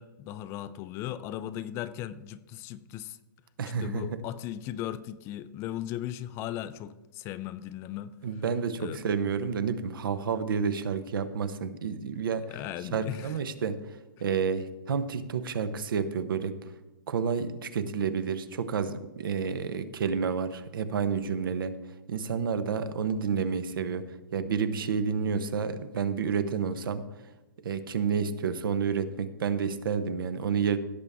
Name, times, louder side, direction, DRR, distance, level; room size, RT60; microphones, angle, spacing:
voice 1, 0.0-3.2 3.8-8.1 8.8-9.0 12.5-13.4, left 12 dB, 25° left, 0.3 m, -37 dB
voice 2, 3.6-4.2 8.2-12.5 12.9-13.8 14.2-16.6 17.1-21.8 22.1-24.1 24.3-27.0 27.6-30.8, right 6 dB, 75° right, 1.0 m, -30 dB
16.5 x 6.9 x 3.6 m
hypercardioid pair, 150°, 12 cm